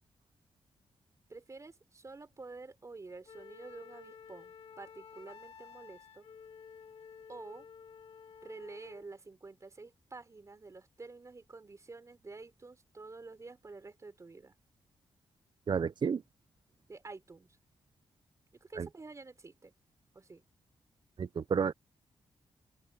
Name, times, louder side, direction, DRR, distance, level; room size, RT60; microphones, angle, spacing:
voice 1, 1.3-6.3 7.3-7.7 8.4-14.5 16.9-17.5 18.6-19.7 20.1-20.4, right 3 dB, 30° right, 4.0 m, -49 dB
Wind instrument woodwind instrument, 3.3-9.1, left 6 dB, 65° left, 3.1 m, -53 dB
voice 2, 15.7-16.2 18.8-18.9 21.2-21.7, right 6 dB, 50° right, 0.7 m, -31 dB
open air
wide cardioid pair, 105°, 10 cm